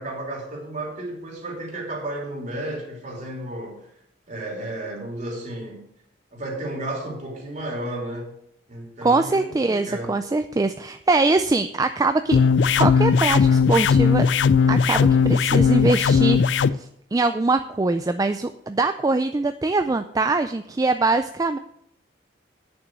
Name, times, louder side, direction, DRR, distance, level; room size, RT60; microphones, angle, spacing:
voice 1, 0.0-3.9 4.3-5.9 6.3-8.3 8.7-10.2, right 1 dB, 45° right, 3.0 m, -33 dB
voice 2, 9.0-12.4 12.8-14.3 14.7-21.6, right 3 dB, 20° right, 0.3 m, -23 dB
sound 1, 12.3-16.7, left 6 dB, 85° left, 0.4 m, -18 dB
8.9 x 6.9 x 6.5 m
head